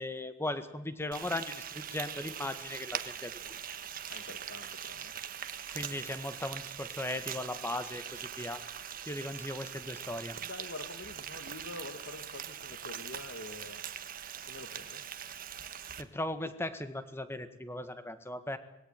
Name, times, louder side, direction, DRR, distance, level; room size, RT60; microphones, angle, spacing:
voice 1, 0.0-3.6 5.7-8.6 9.1-10.4 16.0-18.6, left 1 dB, 15° left, 11 dB, 1.7 m, -38 dB
Frying (food), 1.1-16.0, right 9 dB, 50° right, 1.4 m, -42 dB
voice 2, 4.1-5.1 10.4-13.8 14.5-15.0, left 2 dB, 70° left, 7 dB, 2.1 m, -46 dB
21.0 x 17.0 x 9.2 m, 0.88 s
head